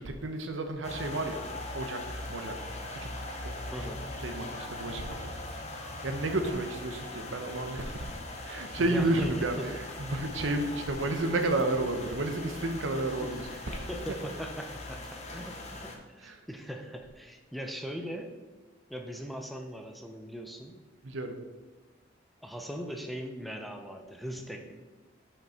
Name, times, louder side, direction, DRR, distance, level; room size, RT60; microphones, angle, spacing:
voice 1, 0.0-1.4 1.7-2.6 2.9-3.5 4.2-5.3 6.0-8.1 8.4-13.9 16.2-16.3 21.0-21.4, right 2 dB, 85° right, 6 dB, 0.8 m, -32 dB
sound 1, 0.8-16.0, left 2 dB, 35° left, 0.8 m, -40 dB
voice 2, 3.7-4.1 8.8-9.8 13.2-18.3 18.9-20.8 22.4-24.7, equal, ahead, 4 dB, 0.5 m, -40 dB
6.0 x 5.4 x 4.3 m, 1.2 s
head